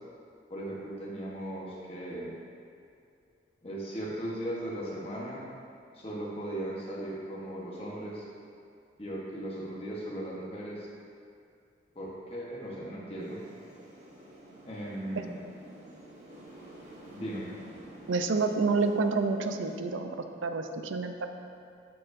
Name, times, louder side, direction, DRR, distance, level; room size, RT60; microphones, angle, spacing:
voice 1, 0.5-2.3 3.6-5.4 5.9-8.2 9.0-10.9 11.9-13.4 14.6-15.4 17.1-17.5, right 1 dB, 30° left, -5 dB, 1.0 m, -37 dB
sound 1, 13.2-19.8, right 1 dB, 35° right, 1.2 m, -50 dB
voice 2, 18.1-21.3, right 4 dB, 80° right, 6 dB, 0.5 m, -29 dB
13.5 x 4.7 x 2.6 m, 2.5 s
head